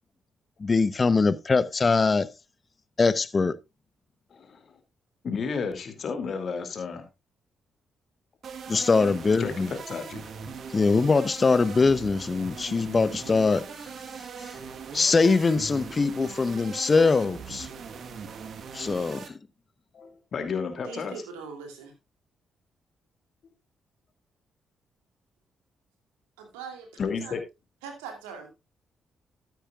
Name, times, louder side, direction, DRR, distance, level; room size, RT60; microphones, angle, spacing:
voice 1, 0.6-2.3 3.0-3.5 8.7-9.7 10.7-13.7 14.4-14.5 14.9-17.7 18.7-19.2, left 4 dB, 40° left, 0.8 m, -22 dB
voice 2, 4.3-4.7 5.2-7.1 9.4-10.3 19.9-21.2 27.0-27.4, left 5 dB, 55° left, 2.5 m, -32 dB
sound 1, 8.4-19.3, right 6 dB, 60° right, 1.4 m, -40 dB
voice 3, 20.8-21.9 26.4-26.9 27.2-27.3 27.8-28.5, right 6 dB, 90° right, 2.7 m, -41 dB
13.5 x 9.2 x 2.4 m
hypercardioid pair, 45°, 0 cm